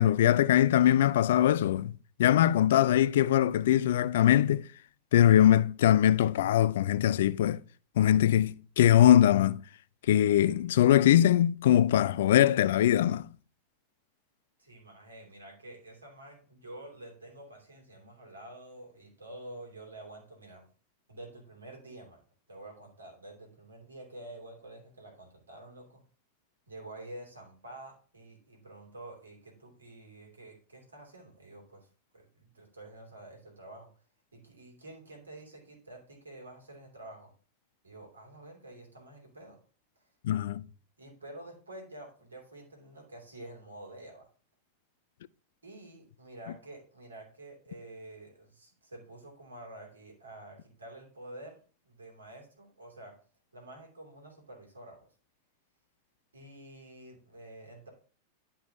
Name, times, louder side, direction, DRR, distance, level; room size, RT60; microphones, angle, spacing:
voice 1, 0.0-1.9 2.2-4.7 5.1-7.6 8.0-9.6 10.1-13.3 40.2-40.6, left 11 dB, 60° left, 0.3 m, -22 dB
voice 2, 14.6-20.7 21.1-22.2 22.5-26.0 26.7-31.9 32.1-33.9 34.3-37.3 37.8-39.6 40.0-40.1 41.0-44.3 45.6-51.6 51.8-53.1 53.5-55.1 56.3-57.9, right 1 dB, 75° right, 2.8 m, -48 dB
11.0 x 5.4 x 2.9 m
figure-of-eight pair, 90°, 0 cm